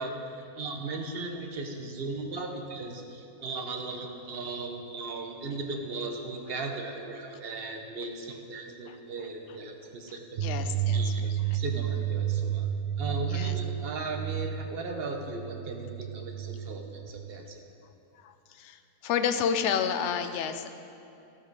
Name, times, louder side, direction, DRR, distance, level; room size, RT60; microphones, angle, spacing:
voice 1, 0.0-10.4 10.9-12.7 13.0-17.5, right 3 dB, 45° right, 3 dB, 0.9 m, -37 dB
sound 1, 10.3-17.2, right 9 dB, 75° right, 0.6 m, -31 dB
voice 2, 10.4-11.6 13.3-13.5 18.1-20.7, left 7 dB, 70° left, 8 dB, 0.7 m, -31 dB
12.5 x 5.6 x 4.7 m, 2.7 s
omnidirectional pair, 1.7 m